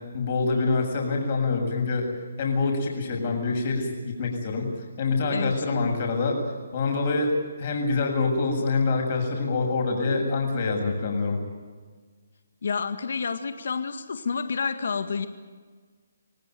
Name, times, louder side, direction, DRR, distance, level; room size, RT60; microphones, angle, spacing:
voice 1, 0.1-2.1 2.4-4.7 5.0-6.4 6.7-7.3 7.6-11.4, left 3 dB, 40° left, 2 dB, 7.6 m, -25 dB
voice 2, 12.6-15.3, left 5 dB, 65° left, 9 dB, 1.9 m, -29 dB
26.5 x 17.5 x 9.4 m, 1.5 s
hypercardioid pair, 155°, 0 cm